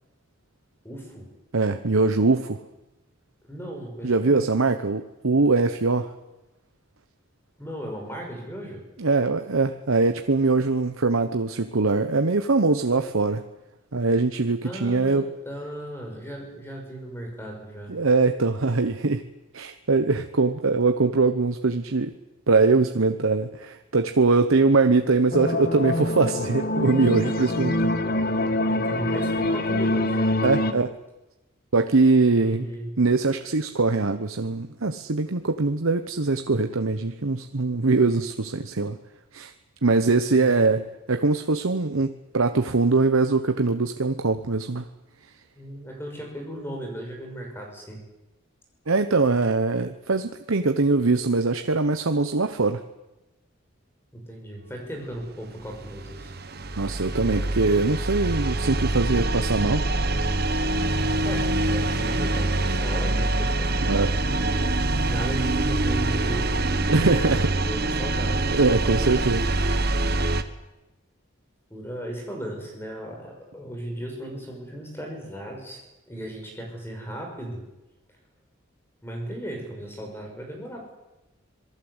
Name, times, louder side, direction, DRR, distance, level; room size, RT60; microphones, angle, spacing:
voice 1, 0.8-1.3 3.5-4.4 7.6-8.8 14.6-17.9 28.0-30.2 32.3-32.9 45.5-48.0 54.1-56.3 61.2-63.7 65.0-68.5 71.7-75.8 76.1-77.6 79.0-80.9, right 1 dB, 10° left, 1 dB, 5.9 m, -36 dB
voice 2, 1.5-2.6 4.0-6.1 9.0-13.4 13.9-15.3 17.9-19.3 19.5-22.1 22.5-27.9 30.4-31.0 31.7-32.7 33.0-39.0 39.3-39.5 39.8-44.9 48.9-52.8 56.8-59.9 63.9-64.2 66.9-67.5 68.5-69.8, right 3 dB, 90° right, 8 dB, 1.0 m, -22 dB
sound 1, 25.3-30.7, left 1 dB, 45° left, 1.4 m, -25 dB
sound 2, 55.5-70.4, right 2 dB, 50° right, 1.4 m, -25 dB
26.5 x 18.5 x 8.1 m, 1.0 s
head